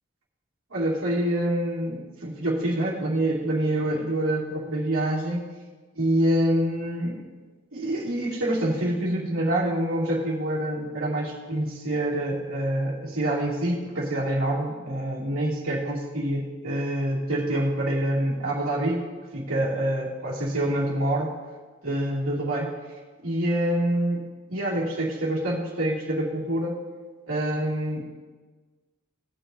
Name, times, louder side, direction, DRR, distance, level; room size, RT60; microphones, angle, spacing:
voice 1, 0.7-5.4 5.9-7.2 7.7-19.0 19.3-21.3 21.8-22.7 23.2-24.2 24.5-26.8 27.3-28.0, right 1 dB, 75° right, -5 dB, 2.7 m, -26 dB
18.0 x 7.1 x 2.7 m, 1.4 s
head